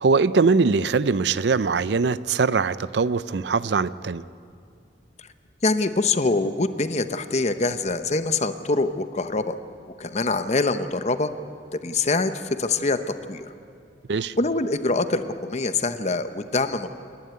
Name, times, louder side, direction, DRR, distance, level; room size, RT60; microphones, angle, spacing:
voice 1, 0.0-4.2 14.1-14.3, right 4 dB, 70° right, 17 dB, 0.5 m, -22 dB
voice 2, 5.6-9.6 10.0-11.3 11.8-12.3 12.6-13.4 14.4-16.9, left 3 dB, 40° left, 10 dB, 0.9 m, -24 dB
28.0 x 11.0 x 9.6 m, 2.4 s
head